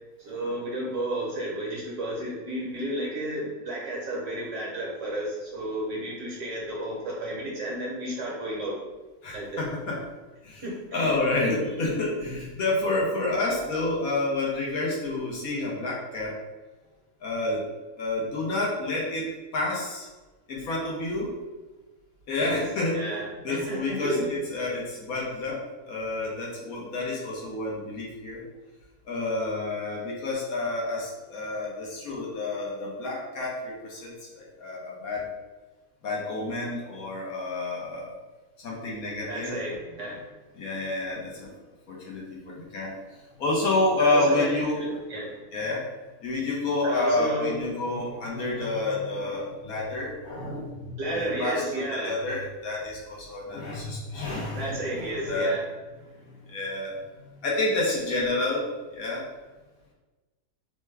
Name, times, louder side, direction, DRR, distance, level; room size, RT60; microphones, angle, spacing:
voice 1, 0.2-8.7 9.3-9.6 10.6-11.1 22.4-22.6 22.9-24.3 39.3-40.2 44.0-45.3 46.8-47.5 51.0-52.1 54.6-55.6, right 1 dB, 55° right, -4 dB, 1.1 m, -32 dB
voice 2, 9.2-10.0 10.4-10.6 10.9-16.4 17.2-17.6 18.0-19.3 19.5-20.1 20.5-21.3 22.3-23.0 23.4-25.6 25.9-28.4 29.1-35.3 36.0-38.1 38.6-39.6 40.5-41.5 41.9-42.9 43.4-44.8 45.5-45.9 46.2-55.5 56.3-57.0 57.4-58.7 58.9-59.2, left 2 dB, 70° left, -4 dB, 1.2 m, -29 dB
3.3 x 2.2 x 3.2 m, 1.2 s
omnidirectional pair, 1.7 m